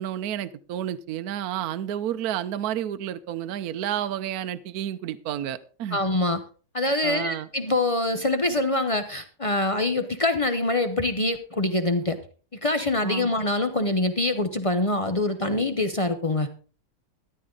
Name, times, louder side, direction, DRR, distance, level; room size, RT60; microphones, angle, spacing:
voice 1, 0.0-6.0 7.0-7.5 13.0-13.3, right 11 dB, 65° right, 11 dB, 1.1 m, -30 dB
voice 2, 5.9-6.4 6.7-12.2 12.5-16.5, left 2 dB, 40° left, 8 dB, 0.4 m, -24 dB
13.5 x 11.5 x 3.8 m, 0.38 s
omnidirectional pair, 1.9 m